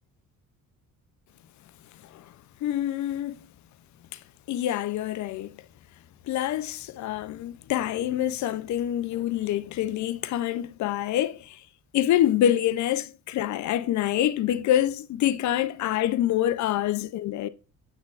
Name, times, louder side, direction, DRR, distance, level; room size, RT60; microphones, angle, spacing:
voice 1, 2.6-3.5 4.5-5.6 6.3-11.6 11.9-17.5, left 12 dB, 60° left, 0.5 m, -26 dB
7.7 x 6.0 x 2.4 m
cardioid pair, 140°, 33 cm